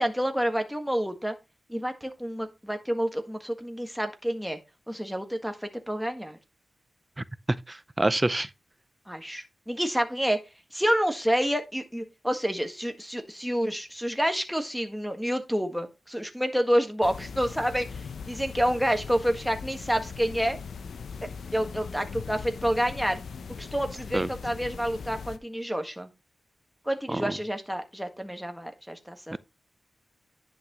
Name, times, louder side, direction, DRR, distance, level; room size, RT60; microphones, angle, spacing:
voice 1, 0.0-1.3 1.7-4.6 4.9-6.4 9.1-10.4 10.7-20.6 21.5-23.2 23.6-26.1 26.8-29.4, equal, ahead, 1.6 m, -28 dB
voice 2, 7.5-8.5 24.1-24.3 27.1-27.2 29.3-29.4, right 2 dB, 25° right, 0.5 m, -26 dB
sound 1, 17.0-25.4, left 5 dB, 85° left, 0.6 m, -40 dB
10.5 x 6.0 x 3.1 m
cardioid pair, 65°, 0 cm